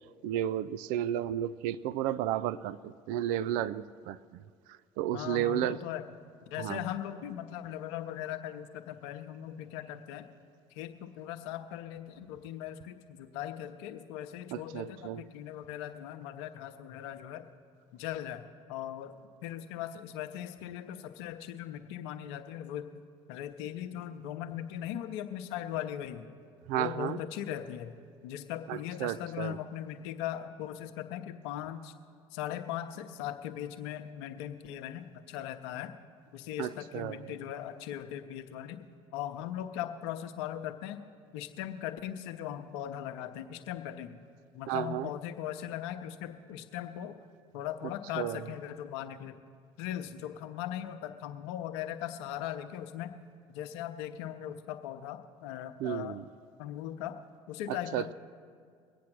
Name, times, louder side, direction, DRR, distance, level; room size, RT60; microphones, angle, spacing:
voice 1, 0.2-4.4 5.0-5.8 6.6-6.8 14.5-15.2 26.7-27.2 28.7-29.6 36.6-37.3 44.7-45.1 48.2-48.4 55.8-56.2 57.9-58.1, right 12 dB, 70° right, 17 dB, 0.4 m, -33 dB
voice 2, 5.1-6.1 6.5-10.2 10.7-17.5 17.9-18.4 18.7-19.1 19.4-22.9 23.3-26.3 26.7-28.0 28.2-31.9 32.3-35.9 36.3-38.8 39.1-41.0 41.3-44.2 44.5-47.2 47.5-49.4 49.8-53.1 53.5-56.2 56.6-57.2 57.5-58.1, left 11 dB, 75° left, 8 dB, 0.8 m, -39 dB
21.5 x 8.5 x 6.1 m, 2.1 s
hypercardioid pair, 65°, 14 cm